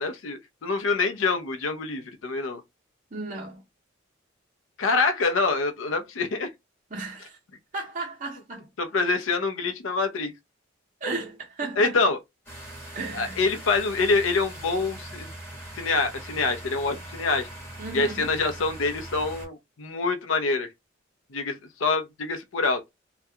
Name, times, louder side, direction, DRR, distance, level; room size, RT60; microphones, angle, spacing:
voice 1, 0.0-2.6 4.8-6.5 8.8-10.3 11.8-12.2 13.1-15.3 15.7-17.5 17.9-20.7 21.3-22.8, left 3 dB, 85° left, 0.6 m, -26 dB
voice 2, 3.1-3.6 6.9-7.4 7.7-8.7 11.0-11.9 12.9-13.4 17.8-18.3, right 3 dB, 40° right, 0.6 m, -34 dB
sound 1, 12.5-19.5, right 1 dB, 10° left, 1.0 m, -41 dB
2.3 x 2.2 x 2.7 m
head